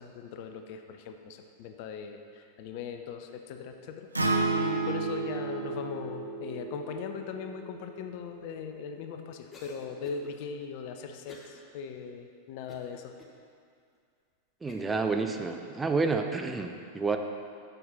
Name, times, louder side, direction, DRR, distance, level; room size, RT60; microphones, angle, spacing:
voice 1, 0.0-13.2, left 6 dB, 45° left, 6 dB, 0.6 m, -40 dB
Acoustic guitar, 4.1-8.4, right 3 dB, 85° right, 0.6 m, -32 dB
Cough, 9.5-10.3 11.3-11.6 12.1-12.2 12.7-13.3 14.0-14.1 14.7-15.0, left 2 dB, 20° left, 1.1 m, -51 dB
voice 2, 14.6-17.2, right 4 dB, 15° right, 5 dB, 0.5 m, -29 dB
6.6 x 6.6 x 5.7 m, 2.3 s
figure-of-eight pair, 90°, 0 cm